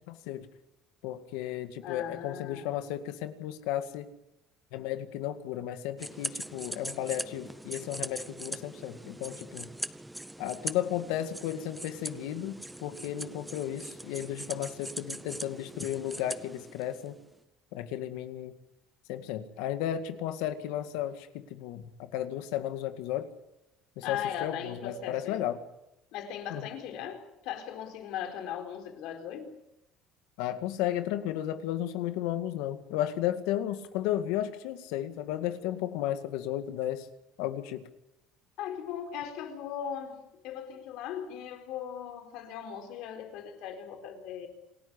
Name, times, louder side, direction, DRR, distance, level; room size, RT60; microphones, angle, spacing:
voice 1, 0.1-0.5 1.0-4.1 4.7-9.7 10.4-17.2 17.7-18.5 19.1-23.3 24.0-25.6 26.5-26.6 30.4-37.1 37.4-37.9, left 12 dB, 85° left, 9 dB, 2.1 m, -34 dB
voice 2, 1.8-2.7 24.0-25.5 26.1-29.6 38.6-44.5, left 9 dB, 70° left, 5 dB, 4.4 m, -38 dB
sound 1, 6.0-17.2, right 1 dB, 5° right, 0.7 m, -41 dB
27.5 x 13.5 x 10.0 m, 0.88 s
cardioid pair, 145°, 0 cm